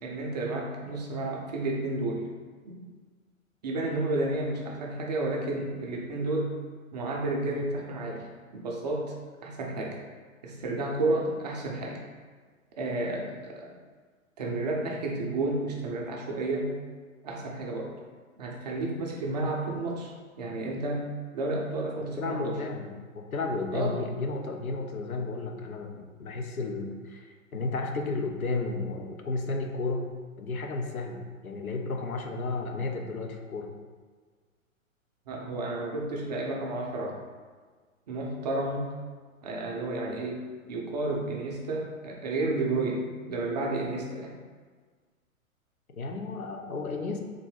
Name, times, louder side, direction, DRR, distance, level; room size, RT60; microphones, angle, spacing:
voice 1, 0.0-2.3 2.6-2.8 3.6-6.5 6.9-8.3 8.5-9.1 9.4-10.0 10.4-12.0 12.8-13.7 14.4-16.7 17.2-18.0 18.4-22.6 23.7-24.0 35.3-37.2 38.1-38.9 39.4-40.4 40.7-44.3, right 2 dB, 30° right, -1 dB, 0.4 m, -31 dB
voice 2, 22.2-30.1 30.4-33.7 45.9-47.2, left 3 dB, 80° left, 3 dB, 0.6 m, -33 dB
3.6 x 2.5 x 3.3 m, 1.5 s
figure-of-eight pair, 110°, 42 cm